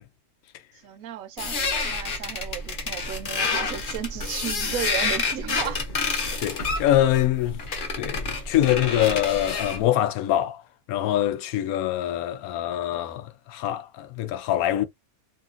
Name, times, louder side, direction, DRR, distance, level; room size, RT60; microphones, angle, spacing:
voice 1, 0.8-5.8, right 10 dB, 75° right, 1.0 m, -34 dB
sound 1, 1.4-9.8, left 4 dB, 45° left, 0.7 m, -29 dB
voice 2, 6.4-7.6 8.0-10.6 10.9-14.8, left 12 dB, 85° left, 1.0 m, -24 dB
2.9 x 2.6 x 2.4 m
omnidirectional pair, 1.5 m